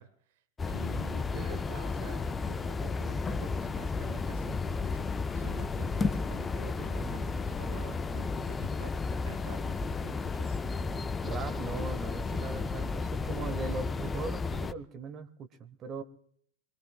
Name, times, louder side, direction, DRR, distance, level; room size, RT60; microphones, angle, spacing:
voice 1, 0.0-8.9 9.3-10.6, right 9 dB, 50° right, 13 dB, 1.1 m, -48 dB
sound 1, 0.6-14.7, left 4 dB, 15° left, 0.6 m, -33 dB
voice 2, 0.8-1.1 7.0-7.3 11.2-16.0, right 4 dB, 30° right, 9 dB, 1.1 m, -40 dB
25.0 x 20.0 x 2.4 m, 0.66 s
figure-of-eight pair, 90°, 0 cm